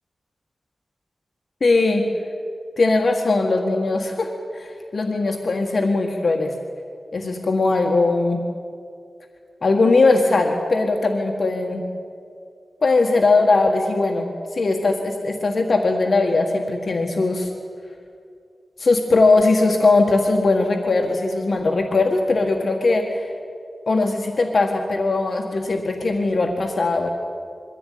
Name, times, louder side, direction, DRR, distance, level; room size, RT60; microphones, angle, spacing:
voice 1, 1.6-2.0 2.8-6.5 7.1-8.4 9.6-11.8 12.8-17.5 18.8-23.3 23.9-27.1, left 3 dB, 60° left, 2 dB, 1.7 m, -20 dB
22.5 x 15.0 x 9.4 m, 2.4 s
wide cardioid pair, 105°, 0 cm